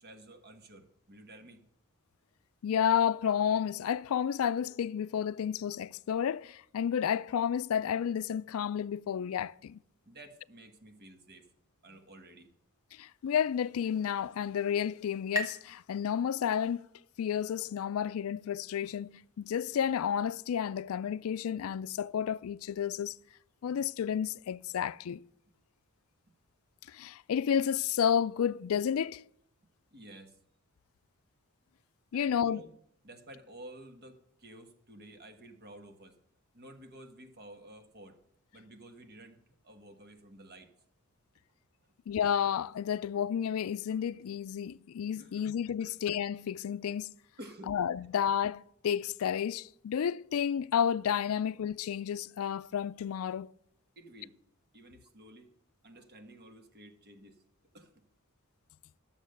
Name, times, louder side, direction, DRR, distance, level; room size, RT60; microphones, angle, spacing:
voice 1, 0.0-1.6 10.0-11.5 11.8-12.5 25.5-25.6 26.3-26.4 29.9-30.4 32.1-32.7 33.0-36.2 36.5-38.2 38.5-40.7 41.8-41.9 45.1-45.5 45.8-45.9 47.4-47.8 54.0-54.4 54.7-55.5 55.8-57.4 57.7-58.0, right 1 dB, 45° right, 1.3 m, -52 dB
voice 2, 2.6-9.8 12.9-16.9 17.2-23.2 23.6-25.2 26.9-29.3 32.1-32.6 42.1-47.1 47.7-53.5, left 8 dB, 70° left, 0.3 m, -31 dB
sound 1, 13.9-17.3, equal, 15° right, 1.3 m, -43 dB
12.5 x 7.2 x 6.6 m
head